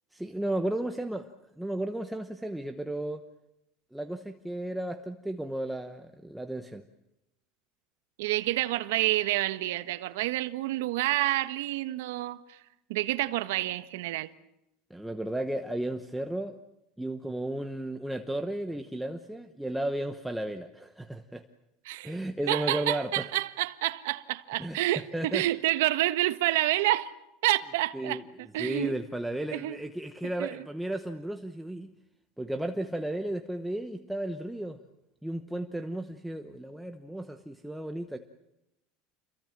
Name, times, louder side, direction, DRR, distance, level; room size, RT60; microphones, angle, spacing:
voice 1, 0.1-1.3 1.6-3.2 3.9-6.8 14.9-16.6 17.0-21.4 22.0-23.3 24.6-24.8 25.1-25.4 27.9-28.2 28.6-31.9 32.4-34.8 35.2-38.2, right 1 dB, ahead, 0.9 m, -34 dB
voice 2, 8.2-12.6 12.9-14.3 21.8-22.2 22.5-27.1 27.4-28.2 28.5-29.0 29.5-29.8 30.4-30.6, right 16 dB, 85° right, 1.4 m, -28 dB
29.0 x 23.0 x 7.6 m
cardioid pair, 175°, 0 cm